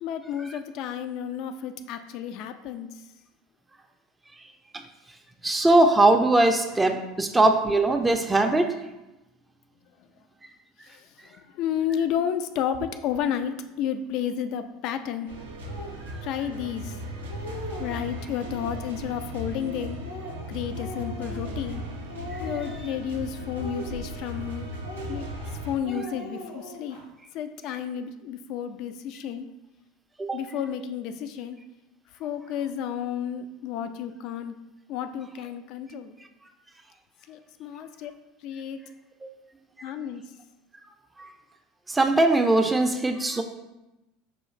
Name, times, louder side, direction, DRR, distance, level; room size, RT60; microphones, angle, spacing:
voice 1, 0.0-2.9 10.8-15.4 16.2-17.0 17.8-20.0 20.5-21.8 22.4-24.7 25.1-25.3 25.7-27.0 27.3-29.5 30.3-31.6 32.2-34.6 34.9-36.2 37.3-38.1 38.4-38.8 39.8-40.2, left 8 dB, 55° left, 10 dB, 0.3 m, -31 dB
voice 2, 5.4-8.7 30.2-30.4 41.9-43.4, right 2 dB, 15° right, 4 dB, 0.4 m, -20 dB
sound 1, 15.3-25.8, equal, 85° right, 0.5 m, -37 dB
Speech, 15.7-16.0 16.7-16.8 17.1-18.0 18.4-19.0 19.5-21.8 22.1-23.0 23.5-24.5 24.8-25.5 25.8-27.0, left 1 dB, 90° left, 1.0 m, -40 dB
5.5 x 2.4 x 3.1 m, 0.97 s
hypercardioid pair, 75°, 0 cm